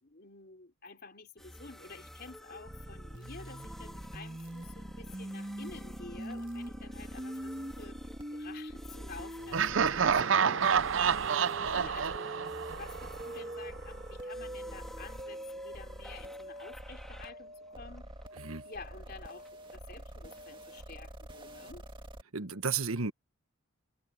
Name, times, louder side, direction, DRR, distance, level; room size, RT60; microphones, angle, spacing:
voice 1, 0.0-8.0 8.3-18.1 18.6-21.8, left 4 dB, 45° left, 3.7 m, -50 dB
sound 1, 1.4-20.8, equal, ahead, 2.6 m, -52 dB
sound 2, 2.7-22.2, right 1 dB, 25° right, 1.9 m, -44 dB
Laughter, 9.5-13.4, right 7 dB, 60° right, 0.6 m, -28 dB
voice 2, 22.3-23.1, right 5 dB, 85° right, 1.4 m, -33 dB
head